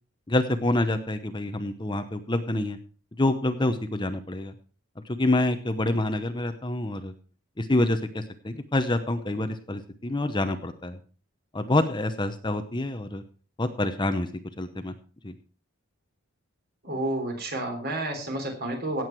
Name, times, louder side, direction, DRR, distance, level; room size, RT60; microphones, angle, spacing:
voice 1, 0.3-2.8 3.1-4.5 5.0-7.1 7.6-11.0 11.5-13.2 13.6-14.3 14.6-14.9 15.2-15.3, left 1 dB, 20° left, 8 dB, 0.8 m, -27 dB
voice 2, 16.8-19.0, right 1 dB, 45° right, 3 dB, 3.6 m, -30 dB
17.0 x 8.0 x 4.6 m, 0.38 s
head